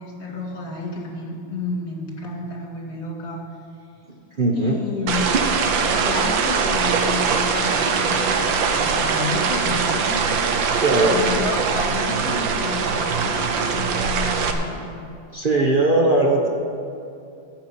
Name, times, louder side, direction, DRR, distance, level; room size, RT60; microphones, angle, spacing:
voice 1, 0.0-3.4 4.5-5.3 5.9-15.0 15.3-15.4, left 2 dB, 30° left, -1 dB, 2.4 m, -31 dB
voice 2, 4.4-4.8 10.8-11.2 15.3-16.5, right 2 dB, 55° right, 0 dB, 0.6 m, -19 dB
sound 1, 5.1-14.5, right 5 dB, 70° right, 1.6 m, -22 dB
14.5 x 5.9 x 8.6 m, 2.5 s
omnidirectional pair, 2.3 m